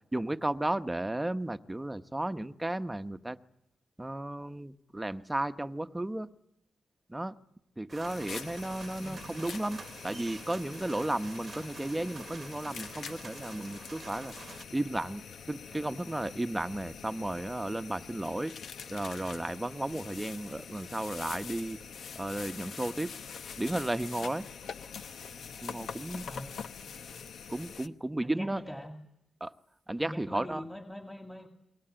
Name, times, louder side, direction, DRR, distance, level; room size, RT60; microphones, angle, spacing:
voice 1, 0.1-3.4 4.0-6.3 7.1-7.4 7.8-14.3 14.7-18.5 18.9-21.8 22.1-23.1 23.6-24.5 25.6-26.2 27.5-28.6 29.4-29.5 29.9-30.6, right 1 dB, 15° right, 10 dB, 1.0 m, -34 dB
sound 1, 7.9-14.6, right 5 dB, 50° right, 1.0 m, -48 dB
sound 2, 8.0-27.9, left 6 dB, 80° left, 1.0 m, -44 dB
voice 2, 9.0-9.3 26.2-26.6 28.2-28.9 30.0-31.5, equal, 5° left, 3 dB, 2.2 m, -43 dB
29.0 x 22.0 x 8.9 m, 0.84 s
cardioid pair, 85°, 0 cm